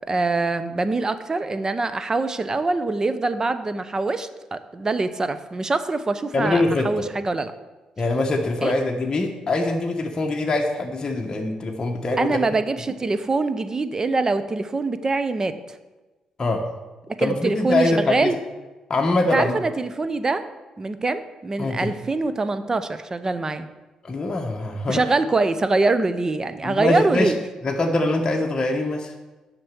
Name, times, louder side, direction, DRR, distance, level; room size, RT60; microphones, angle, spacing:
voice 1, 0.1-7.5 8.6-8.7 12.2-15.8 17.1-18.4 19.3-20.4 20.8-23.7 24.9-27.4, right 3 dB, 30° right, 11 dB, 0.7 m, -24 dB
voice 2, 6.3-7.1 8.0-12.4 16.4-16.7 17.2-18.3 18.9-19.6 21.6-21.9 24.0-25.0 26.6-27.3 27.6-29.1, left 2 dB, 35° left, 0 dB, 1.1 m, -23 dB
7.6 x 6.0 x 6.9 m, 1.2 s
supercardioid pair, 70°, 2 cm